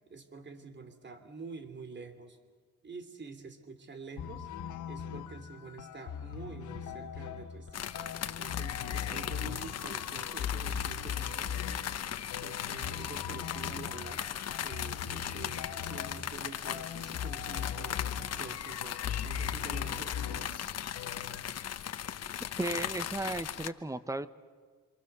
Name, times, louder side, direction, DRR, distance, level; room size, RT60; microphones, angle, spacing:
voice 1, 0.1-2.4 2.8-4.5 4.8-7.9 8.4-11.6 12.4-14.3 14.6-18.0 18.3-20.6, right 4 dB, 35° right, 8 dB, 3.2 m, -47 dB
sound 1, 4.2-21.4, left 8 dB, 75° left, 1.6 m, -40 dB
sound 2, 7.7-23.7, left 10 dB, 55° left, 1.3 m, -38 dB
voice 2, 22.6-24.3, right 2 dB, 10° right, 13 dB, 1.2 m, -35 dB
27.5 x 26.5 x 6.9 m, 1.5 s
cardioid pair, 90°, 30 cm